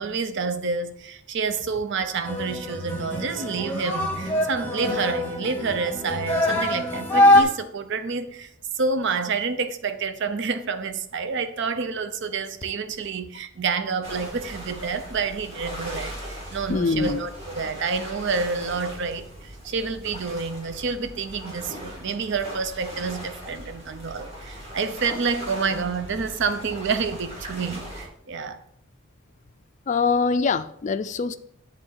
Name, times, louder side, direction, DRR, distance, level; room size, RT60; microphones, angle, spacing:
voice 1, 0.0-8.5 8.8-28.6, right 4 dB, 60° right, 0.6 m, -28 dB
sound 1, 2.2-7.4, left 1 dB, 10° left, 1.1 m, -23 dB
sound 2, 14.0-28.1, equal, 30° right, 2.2 m, -39 dB
voice 2, 16.7-17.2 29.9-31.4, left 4 dB, 35° left, 0.4 m, -23 dB
7.8 x 3.7 x 6.3 m
head